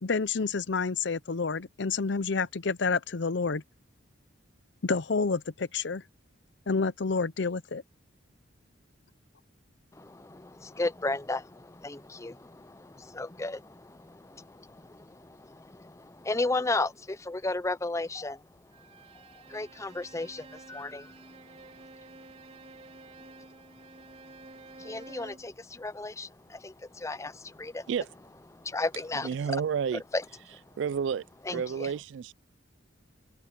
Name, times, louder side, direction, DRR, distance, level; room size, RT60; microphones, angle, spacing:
voice 1, 0.0-3.6 4.8-6.0 6.7-7.8, left 4 dB, 65° left, 0.7 m, -29 dB
voice 2, 9.9-18.4 19.1-21.7 23.4-23.5 24.8-27.9 28.5-29.3 30.1-30.2 30.5-30.6 31.5-31.9, left 2 dB, 15° left, 0.6 m, -35 dB
Bowed string instrument, 18.7-25.5, right 2 dB, 35° right, 4.6 m, -50 dB
voice 3, 29.1-30.0 30.8-31.3 31.5-32.3, right 7 dB, 70° right, 0.3 m, -30 dB
open air
head